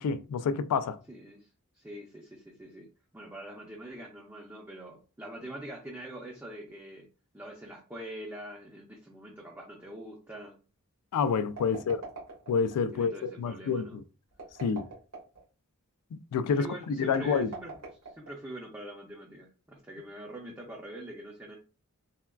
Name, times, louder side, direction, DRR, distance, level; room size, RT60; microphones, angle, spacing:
voice 1, 0.0-1.0 11.1-12.0 12.5-14.0 14.6-14.9 16.1-17.5, left 5 dB, 85° left, 0.3 m, -28 dB
voice 2, 1.1-2.9 3.1-7.1 7.3-10.5 11.7-11.9 12.9-14.0 16.5-17.8 18.1-21.6, right 1 dB, 10° right, 0.5 m, -44 dB
sound 1, 11.3-12.8 14.3-15.4 17.0-18.6, right 3 dB, 90° right, 1.5 m, -43 dB
3.4 x 2.2 x 2.2 m
head